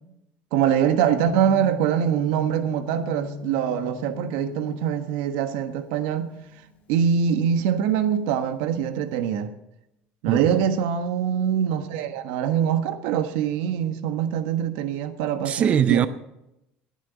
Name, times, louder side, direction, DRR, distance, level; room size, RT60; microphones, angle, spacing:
voice 1, 0.5-6.4 6.9-9.5 10.2-16.1, right 8 dB, 85° right, 1.3 m, -24 dB
Gong, 1.1-9.1, left 5 dB, 30° left, 3.8 m, -41 dB
voice 2, 10.3-10.6 15.4-16.1, right 9 dB, 30° right, 0.4 m, -21 dB
19.5 x 11.0 x 4.1 m
cardioid pair, 160°, 4 cm